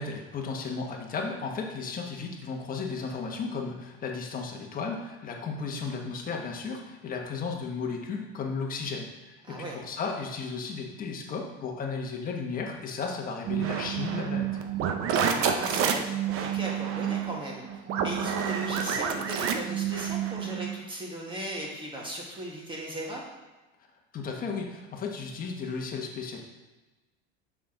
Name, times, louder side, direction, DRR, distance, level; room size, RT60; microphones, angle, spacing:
voice 1, 0.0-14.5 24.1-26.4, left 4 dB, 30° left, 1 dB, 1.2 m, -34 dB
voice 2, 9.4-9.8 15.2-17.6 18.0-23.2, right 1 dB, 15° right, -2 dB, 1.7 m, -37 dB
sound 1, 13.5-20.8, right 8 dB, 45° right, 0.8 m, -29 dB
6.8 x 6.0 x 3.9 m, 1.2 s
supercardioid pair, 135°, 31 cm